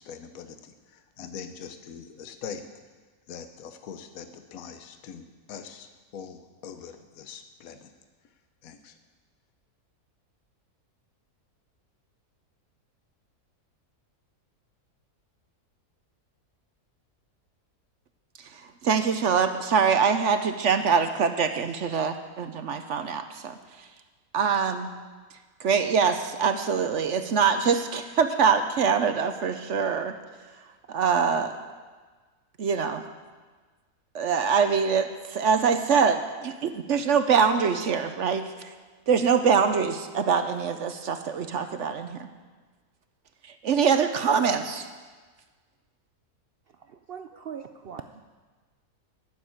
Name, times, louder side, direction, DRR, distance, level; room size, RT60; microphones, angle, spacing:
voice 1, 0.0-2.6 3.3-7.9 8.6-9.0, left 7 dB, 65° left, 8 dB, 1.3 m, -42 dB
voice 2, 18.4-24.0 24.3-24.9 25.3-31.6 32.6-33.0 34.1-38.8 39.1-42.3 43.4-44.9, right 6 dB, 60° right, 8 dB, 0.9 m, -24 dB
voice 3, 46.7-48.3, right 7 dB, 80° right, 7 dB, 0.5 m, -41 dB
12.5 x 7.3 x 9.2 m, 1.4 s
omnidirectional pair, 1.6 m